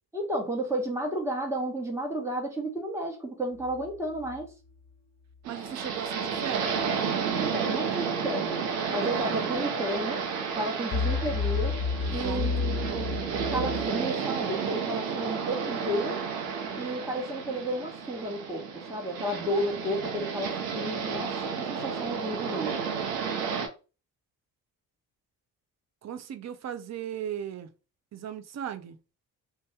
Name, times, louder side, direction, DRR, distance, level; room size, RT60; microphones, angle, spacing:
voice 1, 0.1-4.5 7.4-8.6 8.9-10.2 10.5-11.8 12.1-13.2 13.5-16.2 16.7-22.8, right 1 dB, 5° right, 1.1 m, -32 dB
sound 1, 3.5-4.4 10.9-13.9, left 5 dB, 35° left, 1.1 m, -31 dB
voice 2, 5.5-6.9 9.0-9.5 12.0-12.5 12.9-13.2 26.0-27.7 28.1-29.0, right 9 dB, 35° right, 0.5 m, -37 dB
sound 2, 5.5-23.7, right 6 dB, 90° right, 0.6 m, -32 dB
2.7 x 2.3 x 3.3 m
hypercardioid pair, 45°, 47 cm